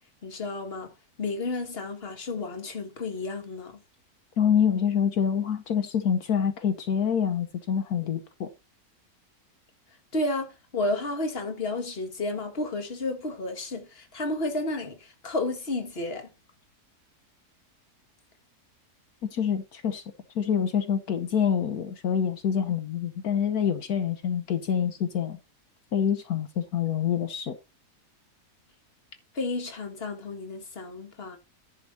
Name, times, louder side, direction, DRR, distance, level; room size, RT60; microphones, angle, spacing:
voice 1, 0.2-0.9 1.2-3.8 10.1-16.3 29.3-31.4, left 2 dB, 40° left, 1.9 m, -32 dB
voice 2, 4.4-8.5 19.3-20.0 20.3-25.4 25.9-27.5, left 8 dB, 75° left, 1.4 m, -26 dB
10.5 x 6.3 x 4.2 m
omnidirectional pair, 1.6 m